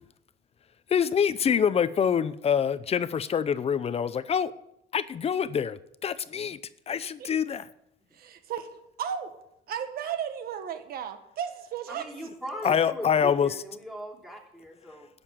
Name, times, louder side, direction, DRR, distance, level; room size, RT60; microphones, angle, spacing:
voice 1, 0.9-4.5 4.9-6.6 6.9-7.6 12.6-13.6, left 7 dB, 35° left, 15 dB, 0.7 m, -25 dB
voice 2, 8.1-8.7 9.0-9.3 9.7-12.1, right 8 dB, 65° right, 8 dB, 1.6 m, -34 dB
voice 3, 11.9-15.1, equal, ahead, 0 dB, 3.2 m, -39 dB
11.5 x 7.0 x 8.4 m, 0.79 s
cardioid pair, 110°, 17 cm